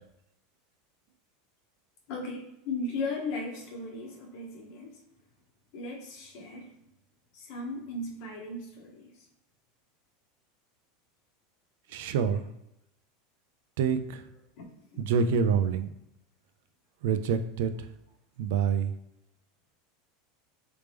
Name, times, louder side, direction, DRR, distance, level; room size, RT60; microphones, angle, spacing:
voice 1, 2.1-5.0 5.7-6.8 7.3-9.1 14.6-14.7 14.9-15.0, left 2 dB, 55° left, 0 dB, 1.0 m, -37 dB
voice 2, 11.9-12.5 13.8-14.3 15.0-15.9 17.0-17.9 18.4-18.9, right 6 dB, 70° right, 10 dB, 0.4 m, -27 dB
3.4 x 3.0 x 3.4 m, 0.84 s
supercardioid pair, 155°, 0 cm